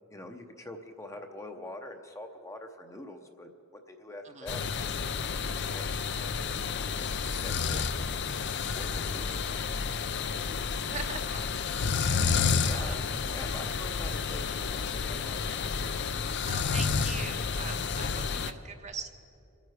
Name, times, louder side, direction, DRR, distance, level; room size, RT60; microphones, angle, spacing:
voice 1, 0.1-3.5 3.9-4.9 5.7-5.8 6.1-6.3 7.2-8.0 8.7-9.8 12.4-13.0 13.3-15.4, left 1 dB, 15° left, 5 dB, 0.7 m, -44 dB
sound 1, 4.5-18.5, left 5 dB, 50° left, 0.5 m, -30 dB
voice 2, 10.9-11.4 11.8-11.9 12.9-13.0 15.5-15.6 16.5-19.1, right 5 dB, 30° right, 6 dB, 0.8 m, -41 dB
26.0 x 9.2 x 4.9 m, 2.6 s
head